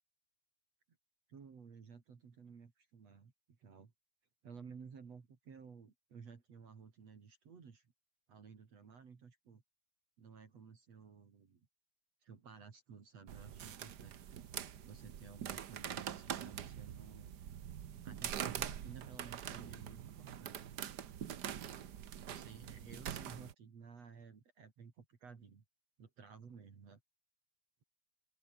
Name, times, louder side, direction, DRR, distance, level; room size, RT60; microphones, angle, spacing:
voice 1, 1.3-3.9 4.4-7.9 8.3-9.6 10.2-11.6 12.2-14.2 14.8-17.4 18.0-20.6 22.2-25.6 26.0-27.0, right 6 dB, 55° right, 4.1 m, -55 dB
sound 1, 13.3-23.5, right 9 dB, 80° right, 0.9 m, -44 dB
open air
omnidirectional pair, 3.5 m